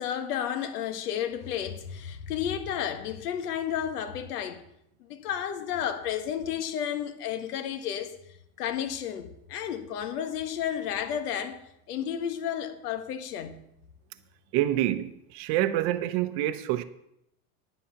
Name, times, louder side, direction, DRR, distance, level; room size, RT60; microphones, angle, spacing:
voice 1, 0.0-4.6 5.1-8.1 8.6-11.6 11.9-13.7, left 9 dB, 90° left, 1.6 m, -32 dB
voice 2, 14.5-16.8, right 13 dB, 35° right, 0.7 m, -27 dB
10.0 x 9.9 x 5.8 m
supercardioid pair, 165°, 45 cm